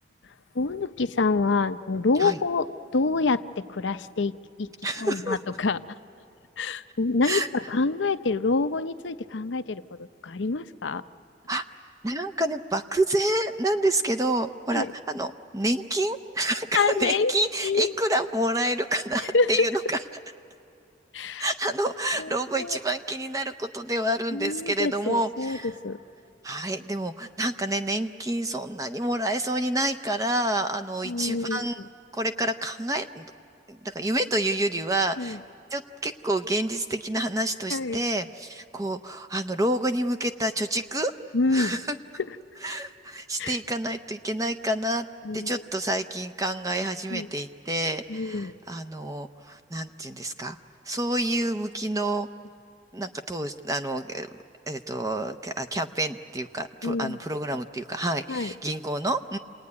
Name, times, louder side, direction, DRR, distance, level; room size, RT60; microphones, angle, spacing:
voice 1, 0.5-4.7 5.0-6.0 6.6-11.0 14.7-14.9 16.7-17.3 17.6-18.0 19.3-19.7 21.1-21.5 22.2-22.8 24.3-26.0 31.0-31.9 35.2-35.4 37.7-38.0 41.3-41.8 43.4-43.6 45.2-45.6 47.1-47.3 48.1-48.5 56.8-57.2 58.3-58.5, left 3 dB, 85° left, 11 dB, 0.7 m, -27 dB
voice 2, 4.8-5.4 7.2-7.5 11.5-11.6 12.0-20.0 21.4-25.7 26.4-31.8 32.1-33.3 33.7-35.4 35.7-41.1 41.5-42.0 42.6-45.1 45.3-50.6 50.9-52.3 52.9-54.3 54.7-59.4, right 1 dB, 20° right, 7 dB, 0.6 m, -28 dB
29.0 x 20.0 x 9.6 m, 2.5 s
head